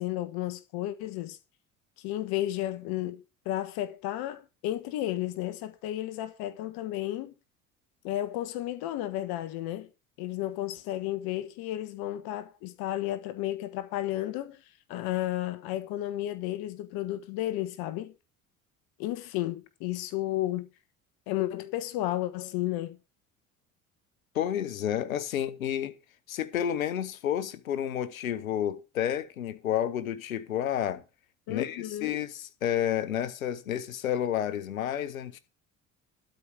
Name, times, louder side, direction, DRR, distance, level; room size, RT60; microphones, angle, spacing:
voice 1, 0.0-1.4 2.0-7.3 8.0-9.9 10.2-14.6 14.9-18.1 19.0-20.7 21.3-23.0 31.5-32.2, left 14 dB, 65° left, 1.3 m, -33 dB
voice 2, 24.3-25.9 26.3-31.0 31.5-35.4, left 10 dB, 90° left, 1.0 m, -30 dB
12.5 x 5.1 x 7.1 m
hypercardioid pair, 65°, 40 cm